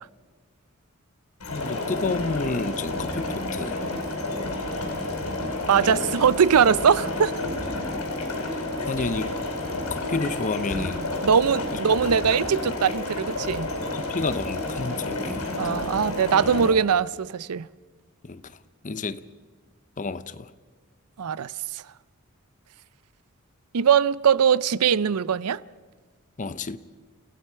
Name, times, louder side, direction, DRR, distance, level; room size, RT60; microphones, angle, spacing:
sound 1, 1.4-16.7, left 2 dB, 80° left, 5.0 m, -30 dB
voice 1, 1.5-3.8 5.8-6.2 8.9-9.4 9.9-11.1 11.7-11.8 13.7-15.5 18.2-18.6 18.8-19.3 20.0-20.5 26.4-26.8, left 3 dB, 35° left, 0.6 m, -30 dB
voice 2, 5.7-7.3 10.8-10.9 11.2-13.7 15.6-17.7 21.2-21.8 23.7-25.6, right 7 dB, 85° right, 0.5 m, -21 dB
28.5 x 16.5 x 5.6 m
head